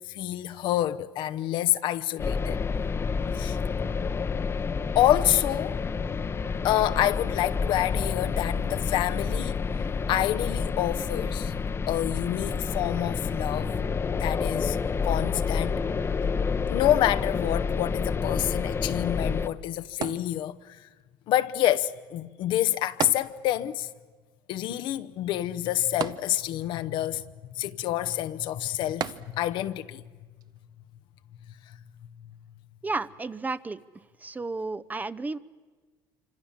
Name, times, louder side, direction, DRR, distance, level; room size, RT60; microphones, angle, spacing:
voice 1, 0.0-2.6 3.3-3.6 4.9-5.8 6.6-9.8 10.1-11.5 11.9-13.7 14.2-14.8 15.0-15.8 16.7-20.9 21.3-23.9 24.5-27.2 27.6-30.0 31.7-31.8, left 13 dB, 70° left, 0.9 m, -27 dB
sound 1, 2.2-19.5, left 5 dB, 30° left, 0.9 m, -29 dB
sound 2, 20.0-20.9 23.0-23.9 24.1-24.2 26.0-26.8 29.0-29.7 30.4-30.5, right 9 dB, 50° right, 0.8 m, -34 dB
voice 2, 32.8-33.8 34.2-35.4, right 3 dB, 20° right, 0.7 m, -32 dB
26.5 x 25.5 x 7.4 m
supercardioid pair, 95°, 9 cm